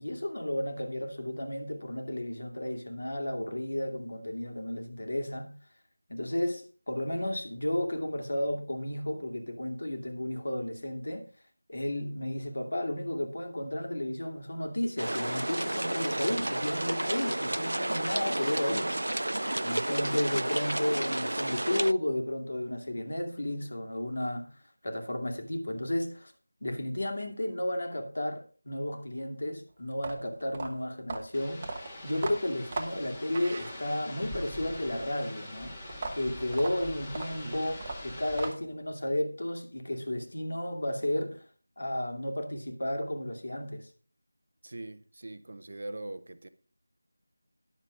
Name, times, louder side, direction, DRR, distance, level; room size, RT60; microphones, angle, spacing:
voice 1, 0.0-5.5 6.1-11.3 11.7-19.0 19.6-24.5 24.8-26.3 26.6-35.8 36.1-41.4 41.8-43.9, left 1 dB, 60° left, 2.5 m, -33 dB
sound 1, 15.0-21.9, right 1 dB, 90° right, 0.4 m, -31 dB
sound 2, 29.9-34.2 35.9-38.8, right 3 dB, 20° right, 1.0 m, -38 dB
sound 3, 31.3-38.5, left 1 dB, 15° left, 1.9 m, -43 dB
voice 2, 44.6-46.5, right 2 dB, 50° right, 0.8 m, -42 dB
11.0 x 7.0 x 5.3 m
figure-of-eight pair, 175°, 0 cm